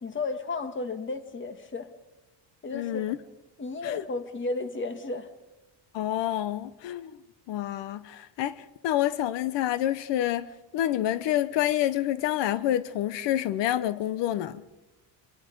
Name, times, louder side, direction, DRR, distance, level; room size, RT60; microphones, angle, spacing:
voice 1, 0.0-1.9 2.6-3.0 3.6-5.3, left 3 dB, 25° left, 1.7 m, -33 dB
voice 2, 2.7-3.2 3.8-4.0 5.9-7.1 7.5-14.6, left 12 dB, 85° left, 0.9 m, -28 dB
26.0 x 23.5 x 5.3 m
cardioid pair, 145°, 42 cm